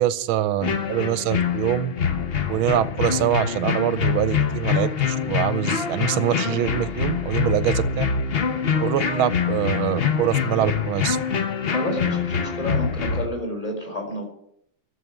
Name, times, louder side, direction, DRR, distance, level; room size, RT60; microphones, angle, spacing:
voice 1, 0.0-1.9 2.5-8.0 8.8-11.2, right 12 dB, 75° right, 14 dB, 1.5 m, -24 dB
sound 1, 0.6-13.3, left 6 dB, 65° left, 0.6 m, -24 dB
voice 2, 11.7-14.3, left 1 dB, 15° left, 1 dB, 4.4 m, -30 dB
12.5 x 7.6 x 10.0 m, 0.70 s
omnidirectional pair, 2.4 m